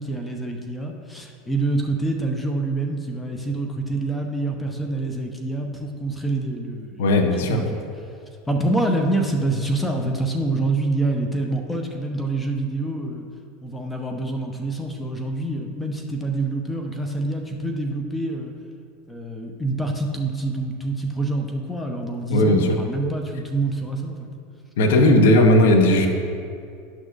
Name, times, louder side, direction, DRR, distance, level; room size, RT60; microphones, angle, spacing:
voice 1, 0.0-7.8 8.5-13.2 13.6-18.5 19.1-24.3, right 2 dB, 10° left, 3 dB, 0.9 m, -26 dB
voice 2, 7.0-7.6 22.3-22.8 24.8-26.1, left 1 dB, 70° left, 3 dB, 0.9 m, -16 dB
11.5 x 6.2 x 2.6 m, 2.4 s
hypercardioid pair, 85°, 0 cm